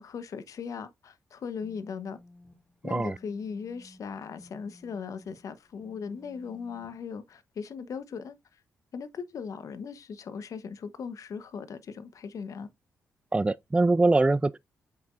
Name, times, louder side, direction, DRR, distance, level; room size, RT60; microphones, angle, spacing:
voice 1, 0.0-2.2 2.8-8.4 8.9-12.7, left 6 dB, 65° left, 1.0 m, -38 dB
sound 1, 1.4-7.1, left 1 dB, 10° left, 3.9 m, -55 dB
voice 2, 2.8-3.2 13.3-14.6, right 2 dB, 20° right, 0.4 m, -23 dB
7.6 x 5.8 x 2.5 m
supercardioid pair, 55°, 6 cm